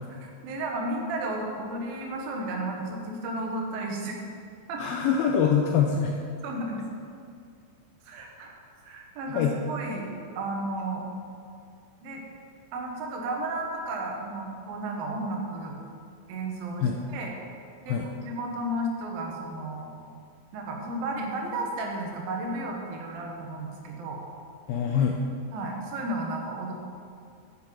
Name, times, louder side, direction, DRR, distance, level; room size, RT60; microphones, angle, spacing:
voice 1, 0.2-4.2 4.7-4.8 6.4-6.8 8.0-8.5 8.8-11.1 12.0-12.2 12.7-15.8 16.3-17.3 17.9-19.9 20.5-24.2 25.5-26.7, right 2 dB, 65° right, 1 dB, 2.7 m, -33 dB
voice 2, 4.8-6.2 9.3-9.5 16.8-17.0 17.9-18.1 24.7-25.2, left 7 dB, 90° left, 2 dB, 2.1 m, -24 dB
10.5 x 9.4 x 4.8 m, 2.4 s
omnidirectional pair, 5.1 m